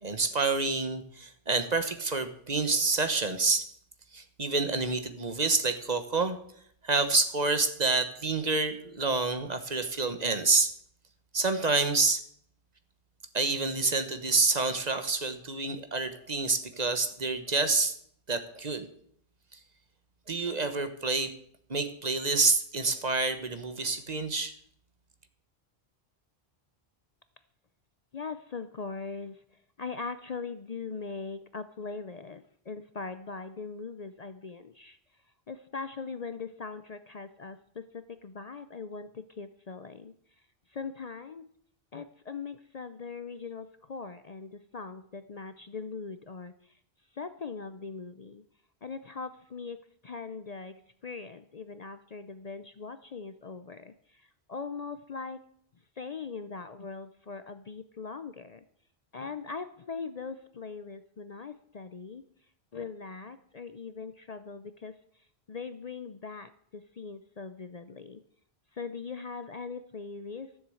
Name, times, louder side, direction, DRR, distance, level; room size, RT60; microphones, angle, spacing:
voice 1, 0.0-3.7 4.1-6.4 6.8-10.7 11.3-12.2 13.3-17.9 18.3-18.9 20.3-21.3 21.7-24.5, right 3 dB, 40° right, 9 dB, 1.2 m, -28 dB
voice 2, 28.1-35.0 35.5-40.1 40.7-41.5 41.9-46.8 47.1-48.4 48.8-55.4 56.0-58.6 59.1-62.2 62.7-68.2 68.7-70.6, left 4 dB, 45° left, 11 dB, 0.6 m, -41 dB
13.5 x 7.3 x 7.7 m, 0.65 s
omnidirectional pair, 1.1 m